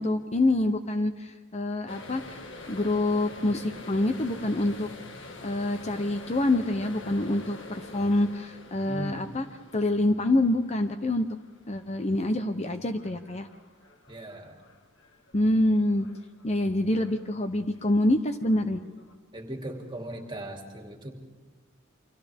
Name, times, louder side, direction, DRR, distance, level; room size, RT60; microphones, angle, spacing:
voice 1, 0.0-2.4 2.7-4.9 5.4-9.5 9.7-11.3 11.7-13.5 15.3-16.1 16.4-18.8, left 1 dB, 30° left, 8 dB, 0.8 m, -26 dB
sound 1, 1.9-16.7 17.0-17.4 17.8-19.1, left 2 dB, 60° left, 1.9 m, -46 dB
voice 2, 8.9-9.4 14.1-14.6 19.3-21.2, right 1 dB, 25° right, 2 dB, 2.8 m, -38 dB
29.5 x 24.5 x 3.6 m, 1.5 s
head